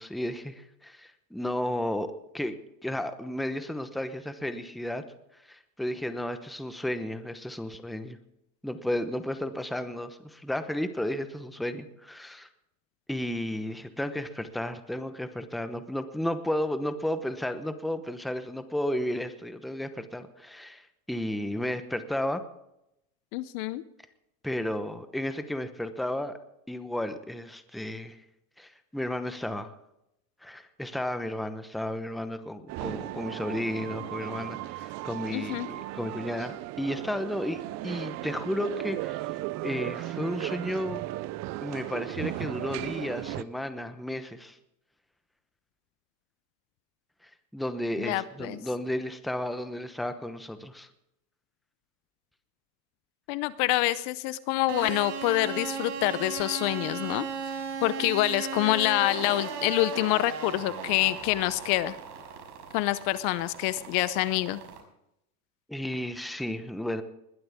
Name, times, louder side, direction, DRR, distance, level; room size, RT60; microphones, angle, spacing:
voice 1, 0.0-5.0 5.5-8.2 8.6-12.5 13.1-20.8 21.1-22.4 24.4-26.4 26.7-28.2 28.6-29.7 30.4-39.2 39.6-41.0 41.6-44.6 47.5-50.9 65.7-67.0, left 1 dB, ahead, 9 dB, 0.9 m, -33 dB
voice 2, 23.3-23.8 35.3-35.7 48.0-48.6 53.3-57.3 57.8-62.0 62.7-64.6, left 17 dB, 50° left, 16 dB, 0.8 m, -26 dB
sound 1, 32.7-43.4, right 17 dB, 35° right, 0.5 m, -36 dB
sound 2, 54.7-64.8, right 6 dB, 55° right, 5.9 m, -37 dB
21.0 x 12.5 x 3.6 m, 0.82 s
supercardioid pair, 125°, 50 cm